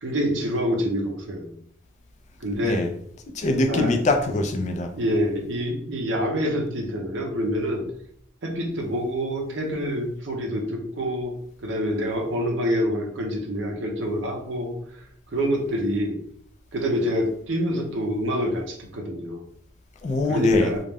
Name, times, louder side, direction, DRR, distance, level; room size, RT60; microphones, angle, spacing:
voice 1, 0.0-1.6 2.4-2.8 3.7-3.9 4.9-7.8 8.4-11.3 11.6-14.8 15.3-16.2 16.7-19.4 20.3-20.8, equal, 65° right, 1 dB, 0.6 m, -26 dB
voice 2, 3.3-4.9 20.0-20.7, left 2 dB, 35° left, 5 dB, 0.3 m, -23 dB
2.3 x 2.1 x 3.3 m, 0.66 s
head